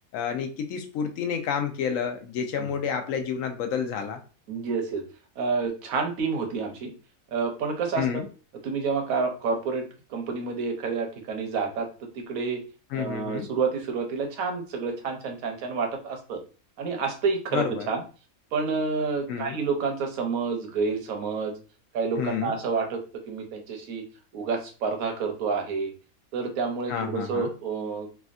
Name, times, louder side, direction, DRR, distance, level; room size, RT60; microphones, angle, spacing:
voice 1, 0.1-4.2 8.0-8.2 12.9-13.5 17.5-17.9 19.3-19.6 22.2-22.5 26.9-27.5, left 7 dB, 70° left, 0.9 m, -29 dB
voice 2, 4.5-5.0 5.4-6.9 7.3-8.2 8.6-11.9 12.1-12.6 12.9-16.4 16.8-18.0 18.5-21.5 21.9-23.0 23.3-24.0 24.3-25.9 26.3-28.1, right 4 dB, 75° right, 1.1 m, -29 dB
3.4 x 2.2 x 2.4 m
omnidirectional pair, 1.5 m